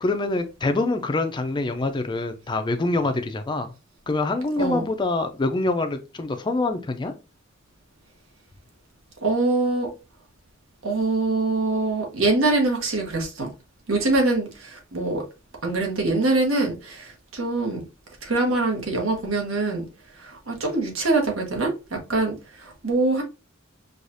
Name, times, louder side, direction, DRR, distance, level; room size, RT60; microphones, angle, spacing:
voice 1, 0.0-3.7 4.1-7.1, left 2 dB, 25° left, 0.4 m, -25 dB
voice 2, 9.2-9.9 10.8-13.5 13.9-15.2 15.6-17.8 18.2-19.9 20.2-21.7 22.1-23.2, right 2 dB, 80° right, 1.2 m, -24 dB
4.7 x 2.3 x 2.6 m
head